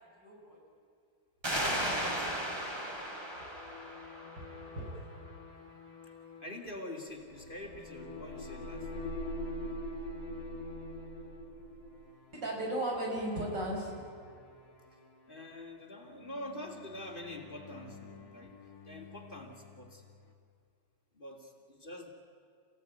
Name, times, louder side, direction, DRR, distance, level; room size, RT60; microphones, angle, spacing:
voice 1, 0.2-0.6 3.3-3.4 4.3-5.0 12.3-14.1, right 1 dB, 90° right, -1 dB, 6.4 m, -36 dB
sound 1, 1.4-4.8, right 1 dB, 15° right, 3.1 m, -35 dB
voice 2, 1.5-2.4 6.4-8.9 15.3-18.5 18.8-20.0 21.1-22.1, left 1 dB, 30° left, 1 dB, 2.8 m, -45 dB
sound 2, 1.6-20.3, left 6 dB, 60° left, 3.1 m, -51 dB
sound 3, 7.1-12.1, equal, 75° left, 3.3 m, -42 dB
28.5 x 17.0 x 9.2 m, 2.3 s
omnidirectional pair, 1.9 m